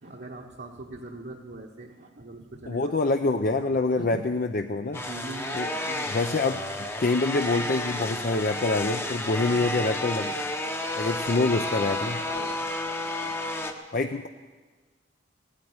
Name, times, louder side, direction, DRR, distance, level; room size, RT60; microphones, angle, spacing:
voice 1, 0.0-2.9 4.0-4.2 4.9-6.2 9.4-9.7 12.2-13.8, right 2 dB, 60° right, -2 dB, 1.2 m, -43 dB
voice 2, 2.7-5.0 5.5-5.7 6.1-10.4 10.9-12.2 13.9-14.3, left 3 dB, 50° left, 5 dB, 0.6 m, -26 dB
sound 1, 4.9-13.7, left 1 dB, 15° left, 0.9 m, -31 dB
16.5 x 9.0 x 9.6 m, 1.4 s
head